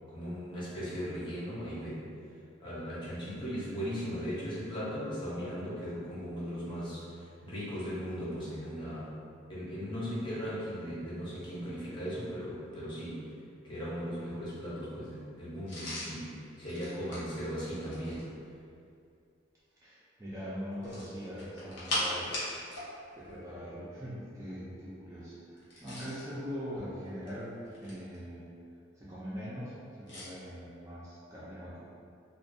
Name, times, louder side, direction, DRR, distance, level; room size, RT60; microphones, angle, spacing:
voice 1, 0.1-2.1 2.6-9.1 9.5-13.3 13.6-18.3, equal, 25° left, -9 dB, 0.7 m, -38 dB
sound 1, 15.7-18.3 20.8-22.9 23.2-23.3 25.6-26.3 27.1-28.2 30.1-30.3, left 1 dB, 65° left, 0.7 m, -39 dB
voice 2, 19.8-22.4 23.1-28.5 29.0-31.8, equal, 15° right, -9 dB, 0.3 m, -42 dB
2.4 x 2.2 x 2.5 m, 2.5 s
head